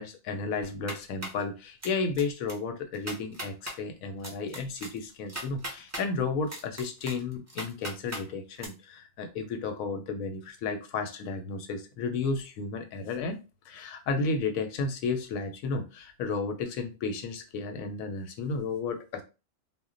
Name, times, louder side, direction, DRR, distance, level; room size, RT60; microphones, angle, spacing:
voice 1, 0.0-13.4 13.7-19.2, left 4 dB, 85° left, 7 dB, 1.0 m, -33 dB
sound 1, 0.6-1.4 1.8-2.2 2.5-2.6 2.9-3.8 4.2-6.1 6.5-8.2 8.6-8.7, right 1 dB, 25° right, 0.3 m, -38 dB
2.2 x 2.1 x 3.7 m, 0.29 s
omnidirectional pair, 1.4 m